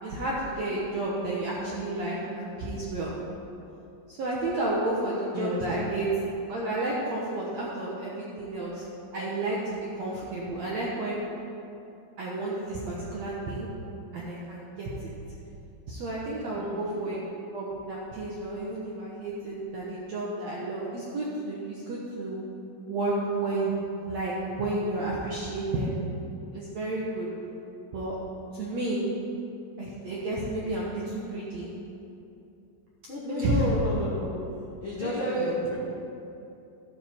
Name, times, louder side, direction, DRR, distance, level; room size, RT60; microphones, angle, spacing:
voice 1, 0.0-3.2 4.1-6.1 6.5-8.8 9.1-11.2 12.2-13.7 14.1-15.1 15.9-17.2 17.5-22.5 22.9-25.9 26.5-27.3 27.9-28.1 28.5-29.0 29.8-31.7 33.2-33.6 35.0-35.5, right 2 dB, 70° right, -5 dB, 1.7 m, -31 dB
voice 2, 5.3-5.7 16.5-16.9 33.1-34.3 34.8-35.8, left 2 dB, 70° left, -6 dB, 1.2 m, -32 dB
14.0 x 9.3 x 4.5 m, 2.7 s
omnidirectional pair, 4.8 m